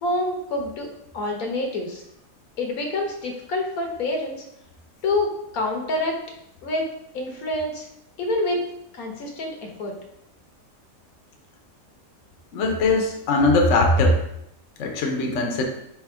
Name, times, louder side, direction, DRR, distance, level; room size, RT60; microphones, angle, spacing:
voice 1, 0.0-0.9 1.1-2.0 2.6-4.4 5.0-6.2 6.6-6.9 7.1-7.9 8.2-9.9, left 2 dB, 85° left, 1 dB, 1.3 m, -27 dB
voice 2, 12.5-14.2 14.8-15.6, left 2 dB, 65° left, 2 dB, 1.0 m, -20 dB
3.4 x 3.1 x 4.7 m, 0.78 s
omnidirectional pair, 1.5 m